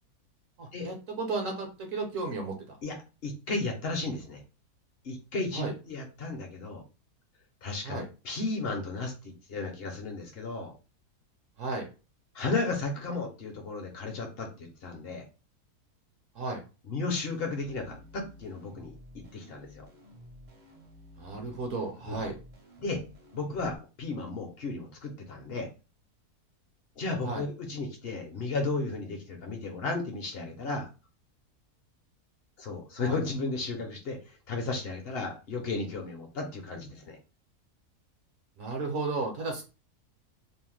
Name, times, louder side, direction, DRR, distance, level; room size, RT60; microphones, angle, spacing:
voice 1, 0.6-2.8 5.5-5.7 7.8-8.1 11.6-11.9 16.3-16.6 21.2-22.4 27.2-27.4 33.0-33.2 38.6-39.6, right 3 dB, 65° right, 3 dB, 0.9 m, -34 dB
voice 2, 3.2-4.4 5.0-6.8 7.6-10.7 12.3-15.2 16.8-19.9 22.1-22.2 22.8-23.0 23.3-25.7 27.0-30.9 32.6-37.2, left 3 dB, 60° left, 2 dB, 0.6 m, -34 dB
sound 1, 17.2-23.8, left 1 dB, 50° right, 0.5 m, -52 dB
2.7 x 2.1 x 3.0 m, 0.31 s
omnidirectional pair, 1.6 m